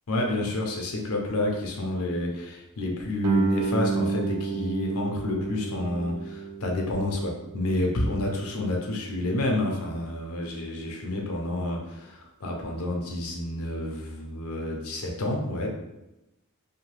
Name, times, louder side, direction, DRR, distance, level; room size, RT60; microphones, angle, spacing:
voice 1, 0.1-15.7, left 1 dB, 75° left, 0 dB, 0.6 m, -29 dB
Guitar, 3.2-8.6, right 4 dB, 70° right, 0.4 m, -30 dB
2.8 x 2.2 x 3.1 m, 0.92 s
head